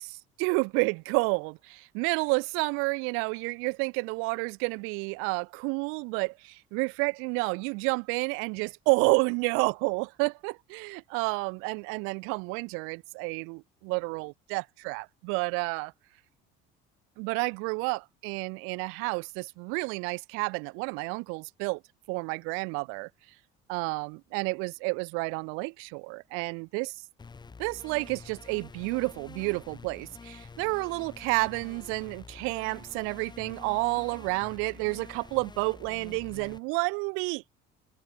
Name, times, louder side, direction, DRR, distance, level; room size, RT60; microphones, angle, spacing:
voice 1, 0.4-15.9 17.2-21.8 22.1-23.1 23.7-26.9 27.6-37.5, right 32 dB, 90° right, 1.2 m, -30 dB
sound 1, 27.2-36.6, left 4 dB, 20° left, 3.6 m, -48 dB
cardioid pair, 130°, 21 cm